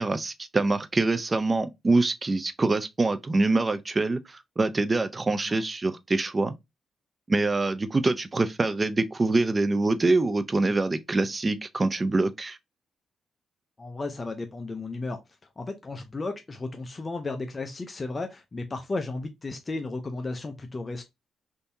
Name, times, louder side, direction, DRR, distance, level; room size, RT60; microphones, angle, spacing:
voice 1, 0.0-6.5 7.3-12.6, right 3 dB, 25° right, 0.5 m, -25 dB
voice 2, 13.8-15.2 15.6-21.0, left 3 dB, 30° left, 0.5 m, -34 dB
3.6 x 2.7 x 2.6 m
cardioid pair, 90°, 0 cm